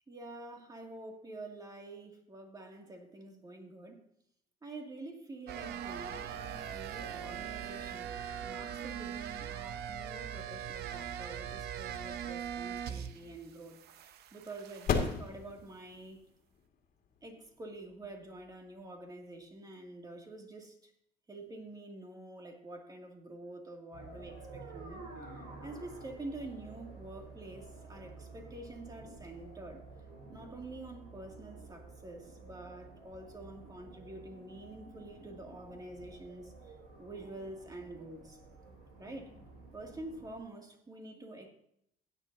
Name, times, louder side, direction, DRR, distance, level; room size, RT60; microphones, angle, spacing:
voice 1, 0.1-4.0 4.6-16.2 17.2-20.9 21.3-25.0 25.6-29.8 30.3-36.5 37.0-38.4 39.0-39.4 39.7-41.5, right 2 dB, 20° right, 2.5 m, -47 dB
sound 1, 5.5-13.4 13.6-15.2, right 9 dB, 75° right, 0.8 m, -41 dB
sound 2, 13.1-19.5, left 5 dB, 60° left, 2.1 m, -40 dB
sound 3, 23.9-40.4, right 3 dB, 90° right, 5.0 m, -51 dB
16.0 x 10.0 x 2.8 m
cardioid pair, 110°, 17 cm